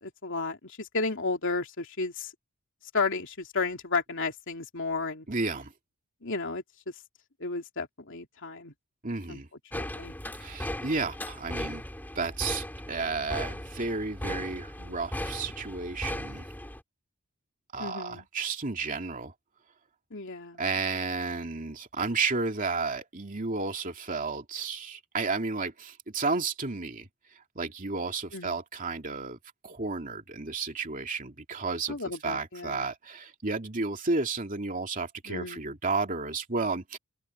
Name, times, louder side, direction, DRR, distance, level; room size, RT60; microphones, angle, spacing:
voice 1, 0.0-2.3 2.9-5.2 6.2-6.6 7.4-8.7 9.3-9.4 9.7-10.1 17.8-18.2 20.1-20.6 28.3-28.6 31.9-32.9 35.2-35.6, left 3 dB, 60° left, 3.0 m, -33 dB
voice 2, 5.3-5.7 9.0-9.5 10.4-11.8 12.1-16.5 17.7-19.3 20.6-27.1 27.5-29.4 29.6-37.0, right 4 dB, 35° right, 2.6 m, -32 dB
sound 1, 9.7-16.8, left 1 dB, 10° left, 3.2 m, -37 dB
head